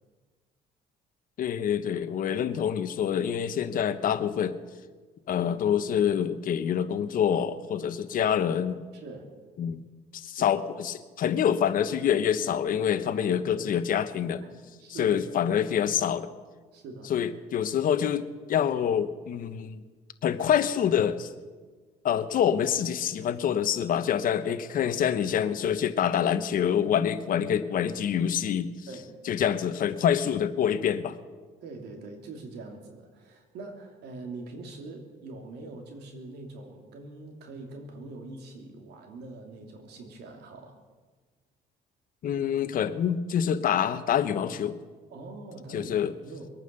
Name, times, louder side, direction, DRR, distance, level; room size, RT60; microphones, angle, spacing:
voice 1, 1.4-4.6 5.3-8.8 9.6-9.8 10.1-14.4 14.9-16.3 17.1-19.8 20.2-21.3 22.0-28.7 29.3-31.2 42.2-44.8 45.7-46.1, left 8 dB, 55° left, 11 dB, 1.0 m, -26 dB
voice 2, 8.9-9.2 10.4-10.5 13.6-13.7 14.5-15.5 16.7-17.2 28.9-29.1 31.6-40.8 45.1-46.5, right 3 dB, 75° right, 3 dB, 2.8 m, -43 dB
22.5 x 9.1 x 6.8 m, 1.4 s
cardioid pair, 110°, 17 cm